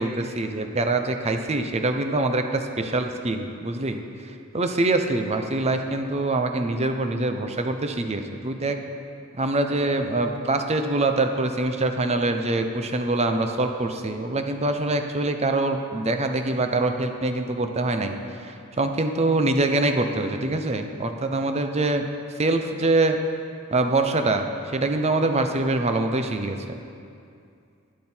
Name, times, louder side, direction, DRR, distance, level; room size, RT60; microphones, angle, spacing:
voice 1, 0.0-4.0 4.5-8.7 9.3-18.1 18.4-22.1 22.4-23.2 23.7-26.6, right 2 dB, 30° right, 6 dB, 0.7 m, -24 dB
12.0 x 10.5 x 4.4 m, 2.4 s
head